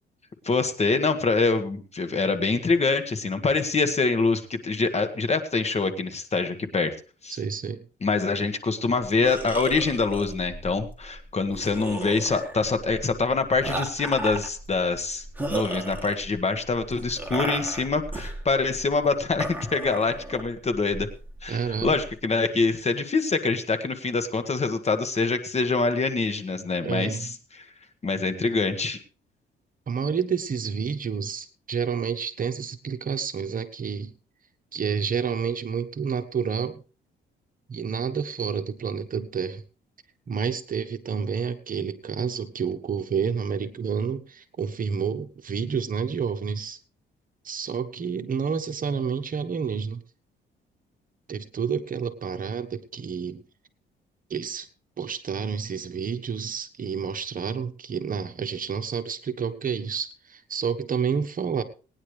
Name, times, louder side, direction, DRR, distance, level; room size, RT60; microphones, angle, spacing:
voice 1, 0.4-6.9 7.2-7.4 8.0-21.1 21.4-27.3 28.0-29.0, left 4 dB, 35° left, 8 dB, 1.6 m, -25 dB
voice 2, 7.3-7.8 21.5-22.0 26.8-27.3 29.9-34.1 34.7-36.8 37.7-39.6 40.3-46.8 47.4-50.0 51.3-53.4 54.3-54.7 55.0-61.6, right 6 dB, 45° right, 9 dB, 1.3 m, -29 dB
sound 1, 9.0-22.1, right 2 dB, 10° right, 2.8 m, -35 dB
19.0 x 9.9 x 3.3 m, 0.35 s
cardioid pair, 90°, 20 cm